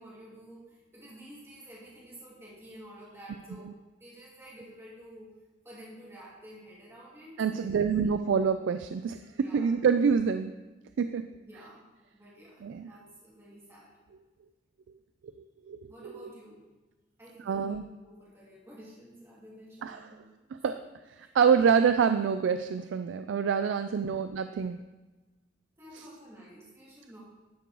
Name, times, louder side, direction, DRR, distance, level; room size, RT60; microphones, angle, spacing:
voice 1, 0.0-3.7 4.0-5.4 5.6-7.9 9.3-9.7 11.4-11.9 12.1-13.9 15.9-16.6 17.2-17.8 18.0-20.5 21.2-21.3 25.8-27.2, equal, 15° right, -7 dB, 2.4 m, -50 dB
voice 2, 7.4-10.6 11.0-11.2 12.6-12.9 15.7-16.3 17.4-17.8 19.8-20.1 20.5-20.8 21.3-24.8 25.9-26.0, right 6 dB, 70° right, 9 dB, 0.3 m, -26 dB
11.0 x 4.6 x 3.9 m, 1.2 s
head